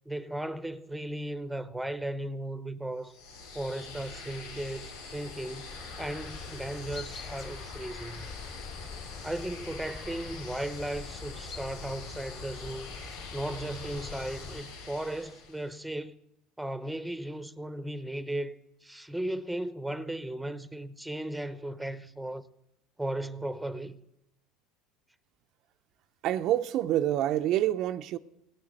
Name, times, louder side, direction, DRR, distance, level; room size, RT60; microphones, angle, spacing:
voice 1, 0.0-3.2 3.5-5.7 6.0-8.3 9.2-13.1 13.3-16.2 16.6-18.6 18.8-22.4 23.0-24.0, right 1 dB, 5° right, 0.8 m, -36 dB
sound 1, 3.0-15.8, left 4 dB, 85° left, 2.6 m, -44 dB
sound 2, 5.7-14.6, left 5 dB, 45° left, 3.5 m, -45 dB
voice 2, 26.2-28.2, right 12 dB, 60° right, 0.5 m, -27 dB
16.0 x 8.8 x 7.7 m
supercardioid pair, 90°, 0 cm